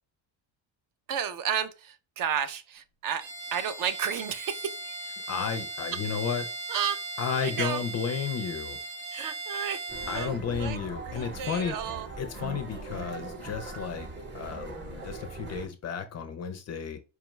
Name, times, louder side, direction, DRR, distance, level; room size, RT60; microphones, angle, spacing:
voice 1, 1.1-3.3 3.5-5.1 6.7-7.0 7.3-7.8 9.1-9.8 10.1-10.8 11.1-12.1, right 8 dB, 45° right, 0.4 m, -32 dB
Bowed string instrument, 3.2-10.4, right 2 dB, 75° right, 0.9 m, -38 dB
voice 2, 5.3-6.5 7.2-8.8 10.1-11.8 12.2-14.1 14.3-17.0, left 7 dB, 35° left, 0.4 m, -33 dB
sound 1, 9.9-15.7, right 2 dB, 25° right, 0.9 m, -40 dB
4.5 x 2.3 x 3.0 m
cardioid pair, 140°, 47 cm